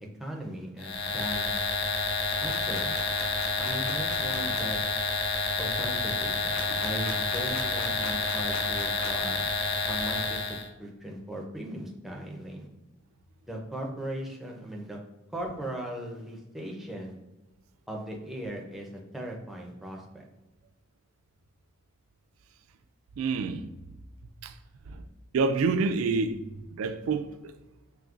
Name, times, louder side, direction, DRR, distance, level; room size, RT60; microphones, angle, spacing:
voice 1, 0.2-1.5 2.4-3.0 3.6-4.8 5.6-9.4 9.9-12.7 13.4-15.0 15.3-17.2 17.9-18.9 19.1-20.3, right 1 dB, ahead, 0.5 m, -38 dB
sound 1, 0.8-10.7, left 3 dB, 50° left, 0.5 m, -29 dB
sound 2, 2.3-4.6 6.5-9.3, left 2 dB, 80° left, 1.0 m, -41 dB
voice 2, 23.2-23.7 24.4-24.6 24.9-25.0 25.3-27.5, right 4 dB, 75° right, 0.4 m, -28 dB
5.0 x 3.1 x 2.5 m
head